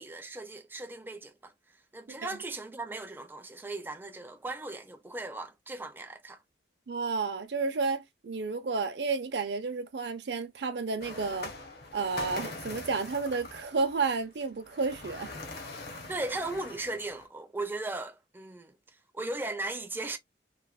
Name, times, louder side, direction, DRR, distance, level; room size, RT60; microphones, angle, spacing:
voice 1, 0.0-1.5 1.9-6.4 16.1-20.2, right 2 dB, 10° right, 0.3 m, -37 dB
voice 2, 6.9-11.5 11.9-15.3, right 4 dB, 70° right, 0.5 m, -31 dB
sound 1, 11.0-17.3, left 2 dB, 60° left, 0.7 m, -43 dB
3.1 x 2.0 x 2.3 m
head